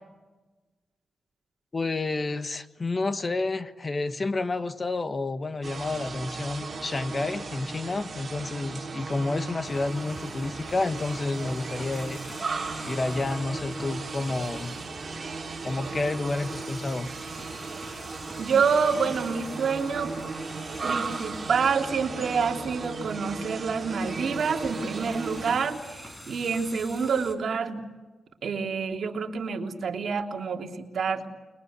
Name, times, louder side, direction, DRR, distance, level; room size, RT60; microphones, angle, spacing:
voice 1, 1.7-12.2 12.8-14.8 15.6-17.1, left 3 dB, 30° left, 10 dB, 1.4 m, -30 dB
sound 1, 5.6-25.5, right 4 dB, 30° right, 6.2 m, -36 dB
sound 2, 9.6-27.4, equal, 10° left, 5.2 m, -47 dB
voice 2, 18.4-20.1 20.8-27.8 28.4-31.2, right 5 dB, 60° right, 2 dB, 3.2 m, -27 dB
30.0 x 23.0 x 8.2 m, 1.2 s
wide cardioid pair, 120°, 0 cm